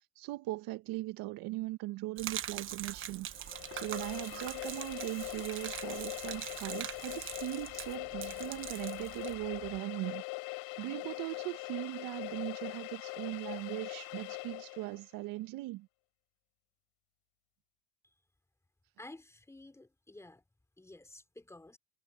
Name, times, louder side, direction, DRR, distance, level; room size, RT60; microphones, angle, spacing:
voice 1, 0.2-3.3 3.7-10.2 10.8-15.9, right 19 dB, 60° right, 1.5 m, -39 dB
Gurgling / Liquid, 2.2-9.8, right 10 dB, 30° right, 1.0 m, -43 dB
sound 1, 3.3-15.0, left 30 dB, 70° left, 4.8 m, -42 dB
voice 2, 19.0-20.4 20.8-21.8, left 2 dB, 5° left, 3.4 m, -52 dB
cardioid pair, 135°, 39 cm